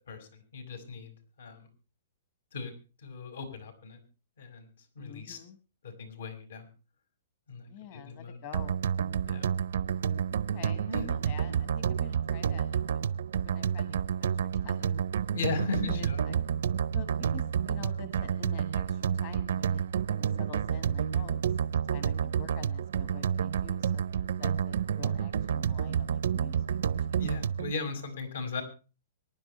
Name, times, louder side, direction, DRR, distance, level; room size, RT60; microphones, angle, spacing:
voice 1, 0.0-1.7 2.5-2.7 3.0-4.0 4.4-4.7 5.0-5.4 5.8-6.7 7.5-8.4 9.3-9.4 10.9-11.1 15.3-16.2 27.1-28.6, left 4 dB, 75° left, 7 dB, 5.5 m, -37 dB
voice 2, 5.0-5.6 7.7-8.8 10.3-13.0 13.4-15.0 15.7-16.4 16.9-19.8 20.1-21.6 21.9-27.2, left 7 dB, 40° left, 9 dB, 1.5 m, -48 dB
sound 1, 8.5-27.7, right 8 dB, 75° right, 0.6 m, -30 dB
24.5 x 11.0 x 3.2 m, 0.33 s
hypercardioid pair, 170°, 0 cm